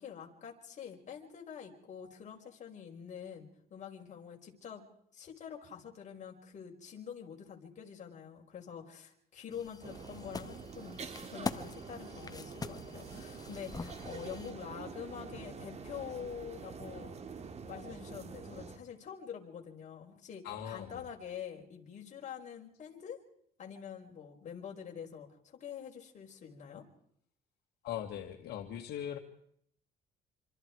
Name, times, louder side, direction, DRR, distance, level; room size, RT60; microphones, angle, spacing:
voice 1, 0.0-4.8 5.1-17.1 17.7-23.2 23.6-26.9, left 8 dB, 45° left, 1 dB, 5.6 m, -46 dB
sound 1, 9.5-14.5, left 4 dB, 20° left, 1.6 m, -44 dB
sound 2, 9.8-18.8, right 5 dB, 40° right, 2.6 m, -46 dB
voice 2, 20.4-21.1 27.8-29.2, left 10 dB, 75° left, 4 dB, 2.2 m, -40 dB
27.5 x 26.5 x 4.9 m, 0.70 s
cardioid pair, 110°, 17 cm